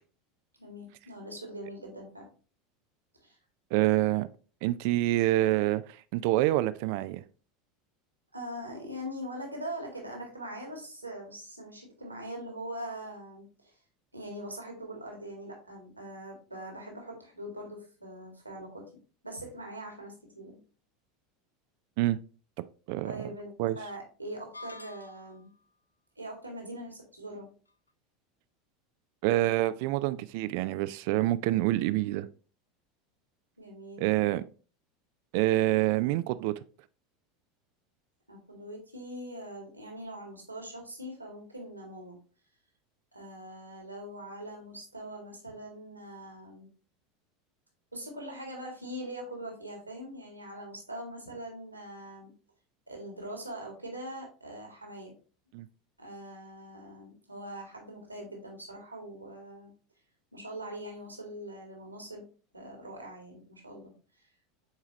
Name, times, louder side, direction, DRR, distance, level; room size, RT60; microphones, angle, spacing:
voice 1, 0.6-2.3 3.1-3.4 8.3-13.7 14.1-18.9 19.2-20.6 23.0-25.5 26.2-27.5 33.6-34.0 38.3-42.2 43.1-46.7 47.9-52.3 52.9-55.1 56.0-59.7 60.3-62.2 62.5-63.9, right 1 dB, 90° right, 2.1 m, -42 dB
voice 2, 3.7-4.3 4.6-7.2 22.0-22.2 22.9-23.2 23.6-23.8 29.2-32.3 34.0-34.5 35.3-36.5 55.5-55.7, right 16 dB, 55° right, 0.4 m, -26 dB
sound 1, 24.5-25.5, left 3 dB, 85° left, 0.4 m, -47 dB
7.4 x 4.7 x 3.0 m
figure-of-eight pair, 80°, 0 cm